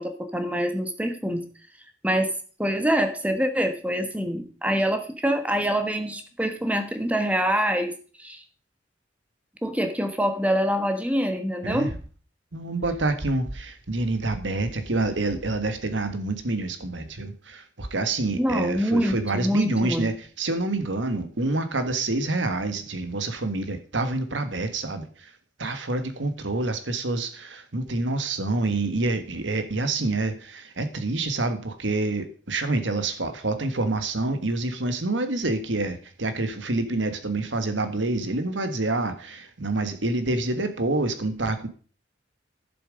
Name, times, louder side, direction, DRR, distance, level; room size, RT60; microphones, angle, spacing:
voice 1, 0.0-1.4 2.0-2.3 2.6-7.9 8.2-8.4 9.6-11.9 18.3-20.1, equal, 10° right, 7 dB, 1.3 m, -25 dB
voice 2, 12.5-25.3 25.6-41.7, right 2 dB, 85° right, 9 dB, 1.6 m, -27 dB
11.5 x 7.3 x 5.1 m, 0.41 s
head